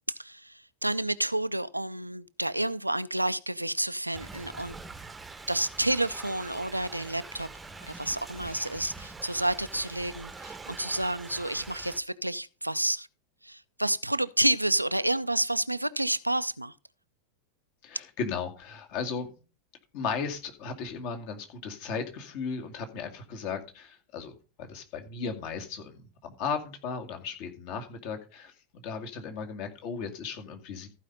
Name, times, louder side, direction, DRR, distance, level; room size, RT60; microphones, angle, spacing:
voice 1, 0.1-4.7 5.5-7.5 7.8-13.1 13.4-16.7, right 1 dB, 90° right, 0.4 m, -30 dB
Thunder / Rain, 4.1-12.0, right 3 dB, 10° right, 0.9 m, -44 dB
voice 2, 17.8-19.3 19.9-24.3 24.7-30.9, left 5 dB, 45° left, 2.3 m, -36 dB
14.5 x 5.0 x 5.5 m
figure-of-eight pair, 90°, 0 cm